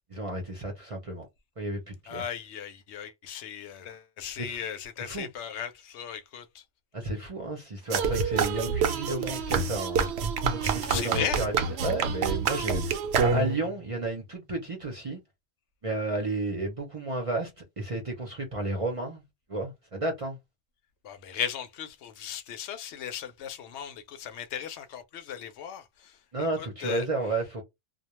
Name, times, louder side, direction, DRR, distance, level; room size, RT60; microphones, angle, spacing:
voice 1, 0.1-1.3 1.6-2.2 4.4-4.6 5.0-5.3 6.9-10.1 10.5-15.2 15.8-19.2 19.5-20.4 26.3-27.6, right 2 dB, 35° right, 0.6 m, -32 dB
voice 2, 2.1-6.6 10.9-11.4 21.0-26.2 26.6-27.1, left 9 dB, 80° left, 0.9 m, -36 dB
sound 1, 7.9-13.7, right 5 dB, 75° right, 0.8 m, -27 dB
2.3 x 2.1 x 2.9 m
omnidirectional pair, 1.1 m